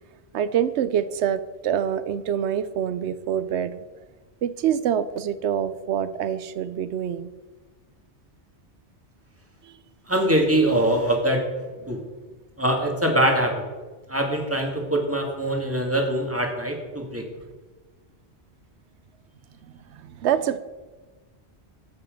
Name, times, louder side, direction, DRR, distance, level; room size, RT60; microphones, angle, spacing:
voice 1, 0.3-3.8 4.4-7.3 9.6-9.8 19.9-20.6, right 9 dB, 90° right, 13 dB, 0.9 m, -26 dB
voice 2, 10.1-11.4 11.9-12.0 12.6-13.6 14.1-17.2, right 1 dB, 10° right, 1 dB, 2.1 m, -23 dB
14.0 x 8.7 x 5.2 m, 1.3 s
omnidirectional pair, 1.1 m